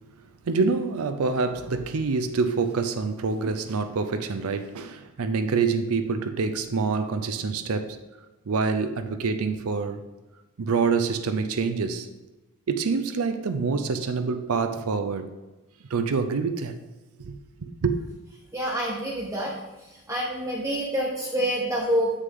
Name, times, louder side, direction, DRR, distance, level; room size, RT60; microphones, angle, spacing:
voice 1, 0.4-8.0 8.5-10.0 10.6-12.1 12.7-15.3 15.9-16.8 17.2-18.0, right 4 dB, 85° right, 0.5 m, -26 dB
voice 2, 18.5-22.1, right 1 dB, 15° right, 1.0 m, -27 dB
7.6 x 6.6 x 3.6 m
head